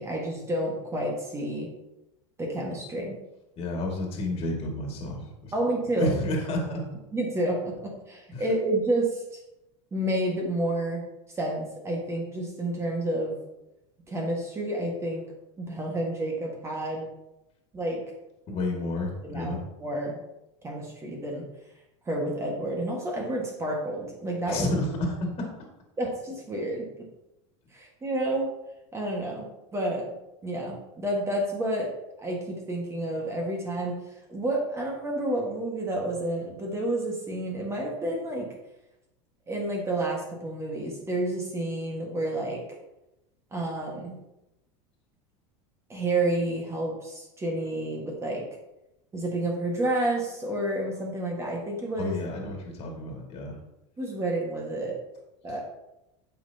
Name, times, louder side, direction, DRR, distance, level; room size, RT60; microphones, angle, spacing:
voice 1, 0.0-1.7 2.4-3.2 5.5-6.1 7.1-9.2 9.9-11.0 11.3-13.4 14.1-15.2 15.6-17.1 17.7-18.0 19.2-20.2 20.6-21.5 22.0-24.7 26.0-27.0 27.7-28.5 28.9-30.1 30.4-31.9 32.2-33.9 34.3-38.5 39.5-42.6 43.5-44.2 45.9-48.4 49.1-52.2 54.0-55.0 55.4-55.6, right 1 dB, 20° right, -1 dB, 1.5 m, -30 dB
voice 2, 3.6-5.5 6.0-6.8 8.3-8.4 18.5-19.6 24.5-25.5 52.0-53.6, left 1 dB, 40° left, 0 dB, 2.0 m, -30 dB
8.6 x 5.7 x 2.8 m, 0.91 s
supercardioid pair, 130°, 15 cm